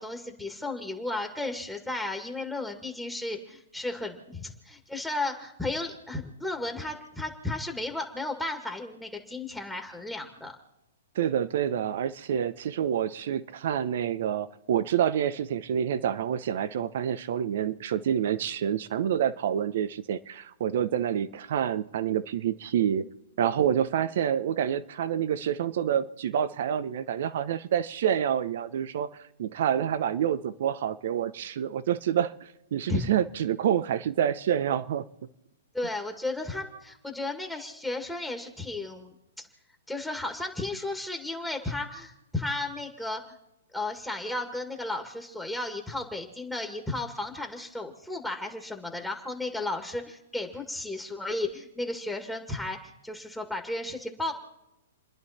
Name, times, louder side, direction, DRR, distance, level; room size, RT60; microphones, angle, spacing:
voice 1, 0.0-10.5 32.9-33.0 35.7-39.5 39.9-43.4 43.7-54.3, left 2 dB, 5° left, 2 dB, 1.8 m, -34 dB
voice 2, 11.1-23.0 23.4-29.1 29.4-35.0, right 9 dB, 60° right, 15 dB, 0.9 m, -27 dB
30.0 x 10.5 x 4.3 m, 0.93 s
hypercardioid pair, 130°, 0 cm